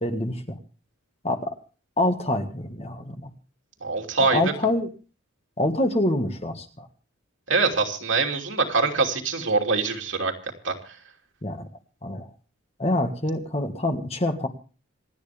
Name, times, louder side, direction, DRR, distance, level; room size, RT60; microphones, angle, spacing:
voice 1, 0.0-0.6 1.2-1.5 2.0-3.3 4.2-4.9 5.6-6.9 11.4-11.7 12.0-12.3 12.8-14.5, left 1 dB, 30° left, 6 dB, 1.7 m, -26 dB
voice 2, 3.8-4.4 7.5-10.3 10.6-10.7, right 4 dB, 70° right, 2 dB, 2.8 m, -23 dB
27.5 x 9.5 x 3.5 m, 0.37 s
head